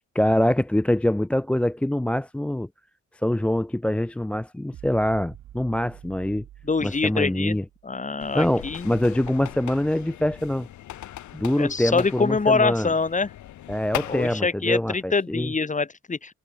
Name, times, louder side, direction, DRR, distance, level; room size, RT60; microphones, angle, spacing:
voice 1, 0.0-2.7 3.2-6.4 6.8-7.6 8.3-10.7 11.3-12.9 13.7-15.5, left 1 dB, 5° left, 0.4 m, -24 dB
sound 1, 4.7-8.2, right 12 dB, 75° right, 3.1 m, -47 dB
voice 2, 6.6-7.6 7.8-8.9 11.6-13.3 14.1-16.3, left 4 dB, 25° left, 2.4 m, -25 dB
sound 2, 8.2-14.4, left 12 dB, 75° left, 2.4 m, -39 dB
cardioid pair, 90°, 30 cm